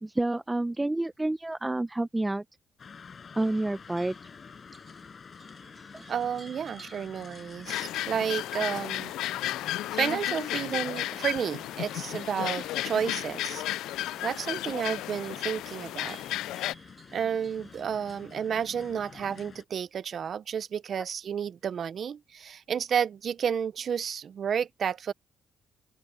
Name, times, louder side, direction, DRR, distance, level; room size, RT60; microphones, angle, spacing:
voice 1, 0.0-2.4 3.3-4.1 5.9-6.0, right 2 dB, 15° right, 0.7 m, -29 dB
sound 1, 2.8-19.6, left 6 dB, 45° left, 7.5 m, -49 dB
sound 2, 3.4-17.8, right 4 dB, 35° right, 5.4 m, -57 dB
voice 2, 6.1-9.1 9.9-13.6 14.2-16.2 17.1-25.1, right 8 dB, 55° right, 0.8 m, -31 dB
sound 3, 7.7-16.7, left 15 dB, 90° left, 0.3 m, -33 dB
open air
cardioid pair, 90°, 0 cm